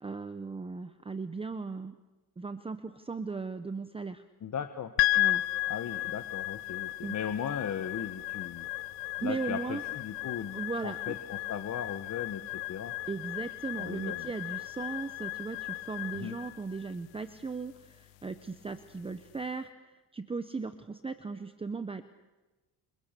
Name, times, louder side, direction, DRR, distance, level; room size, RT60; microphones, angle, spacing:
voice 1, 0.0-2.0 2.4-4.2 5.2-5.4 7.0-7.1 9.2-9.8 10.5-11.1 13.1-19.7 20.1-22.0, right 4 dB, 15° right, 10 dB, 1.0 m, -37 dB
voice 2, 4.4-4.9 5.7-8.7 9.2-12.9 13.8-14.3 16.1-16.3, left 8 dB, 40° left, 7 dB, 1.5 m, -37 dB
sound 1, 5.0-19.4, left 18 dB, 85° left, 1.0 m, -35 dB
30.0 x 27.5 x 6.9 m, 1.1 s
cardioid pair, 145°, 43 cm